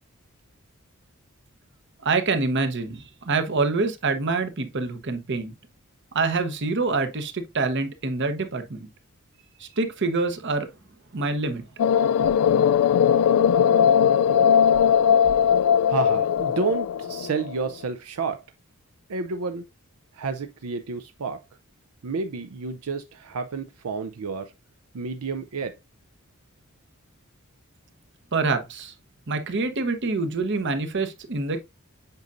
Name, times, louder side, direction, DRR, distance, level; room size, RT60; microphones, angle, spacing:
voice 1, 2.0-5.5 6.1-8.9 9.6-10.7 11.1-11.7 28.3-28.9 29.3-31.6, right 3 dB, 55° right, 0.9 m, -26 dB
sound 1, 11.8-17.6, left 8 dB, 75° left, 0.3 m, -19 dB
voice 2, 15.9-18.4 19.1-19.7 20.1-21.4 22.0-24.5 24.9-25.8, right 4 dB, 80° right, 0.5 m, -30 dB
8.0 x 5.3 x 2.5 m
head